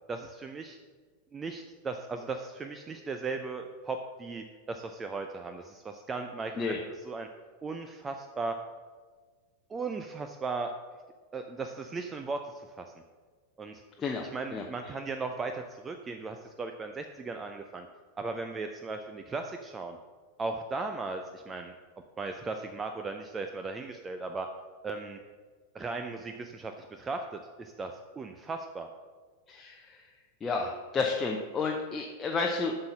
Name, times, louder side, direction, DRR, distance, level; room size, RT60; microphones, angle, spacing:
voice 1, 0.1-0.8 1.3-6.7 7.0-7.3 7.6-8.6 9.7-10.7 11.3-12.8 13.6-13.8 14.3-17.9 18.2-20.0 20.4-21.7 22.2-24.5 24.8-25.2 25.7-28.9, right 3 dB, 15° right, 6 dB, 0.5 m, -37 dB
voice 2, 14.0-14.7 29.5-30.0 30.4-32.8, left 4 dB, 20° left, 0 dB, 0.7 m, -31 dB
7.6 x 5.7 x 5.9 m, 1.4 s
figure-of-eight pair, 90°, 0 cm